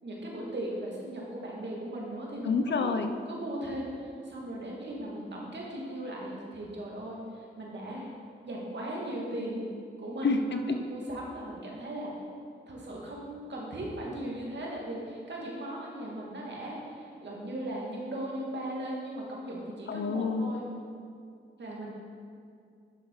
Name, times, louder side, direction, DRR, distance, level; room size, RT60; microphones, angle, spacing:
voice 1, 0.0-2.9 3.3-8.1 8.4-9.6 10.0-10.3 10.8-12.1 12.7-20.6 21.6-21.9, right 1 dB, 55° right, -3 dB, 2.7 m, -38 dB
voice 2, 2.4-3.1 10.2-10.8 19.9-20.5, left 4 dB, 60° left, 7 dB, 0.8 m, -28 dB
10.5 x 6.4 x 4.9 m, 2.3 s
supercardioid pair, 50°, 21 cm